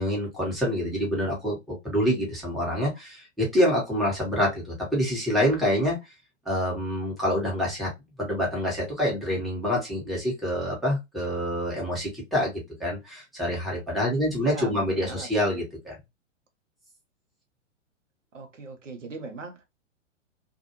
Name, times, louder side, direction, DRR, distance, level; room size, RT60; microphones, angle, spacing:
voice 1, 0.0-6.0 6.4-7.9 8.2-16.0, equal, ahead, 1.2 m, -26 dB
voice 2, 14.4-15.6 18.3-19.6, right 3 dB, 80° right, 1.0 m, -40 dB
2.7 x 2.5 x 2.7 m
figure-of-eight pair, 110°, 37 cm